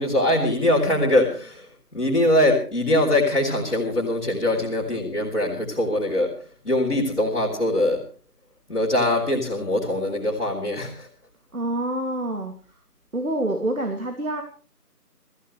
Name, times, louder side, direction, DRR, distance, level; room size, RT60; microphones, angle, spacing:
voice 1, 0.0-6.3 6.6-8.0 8.7-11.1, left 1 dB, 45° left, -4 dB, 4.0 m, -22 dB
voice 2, 11.5-12.5 13.1-14.4, right 1 dB, 60° right, 4 dB, 2.8 m, -27 dB
27.0 x 14.5 x 3.3 m, 0.38 s
figure-of-eight pair, 170°, 48 cm